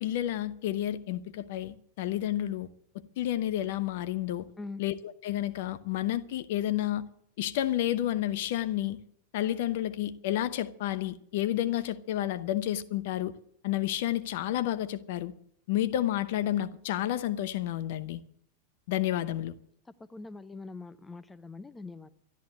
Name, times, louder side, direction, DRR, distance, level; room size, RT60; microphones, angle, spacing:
voice 1, 0.0-2.7 3.2-4.5 4.8-7.0 7.4-9.0 9.3-13.3 13.6-15.3 15.7-18.2 18.9-19.5, left 13 dB, 50° left, 0.8 m, -30 dB
voice 2, 19.8-22.1, left 3 dB, 10° left, 0.8 m, -43 dB
12.5 x 11.5 x 7.9 m
figure-of-eight pair, 90°, 0 cm